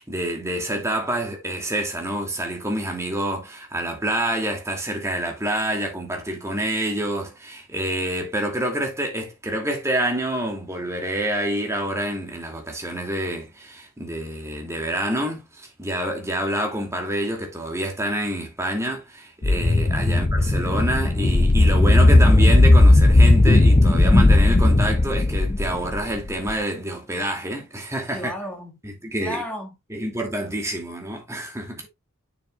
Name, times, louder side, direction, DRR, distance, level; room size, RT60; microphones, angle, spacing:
voice 1, 0.0-28.3 28.8-29.4 29.9-31.8, right 1 dB, 15° right, 2.4 m, -27 dB
sound 1, 19.4-26.5, left 2 dB, 25° left, 0.5 m, -16 dB
voice 2, 28.1-28.8 29.2-29.7, equal, 5° left, 1.8 m, -33 dB
8.7 x 7.3 x 2.4 m
head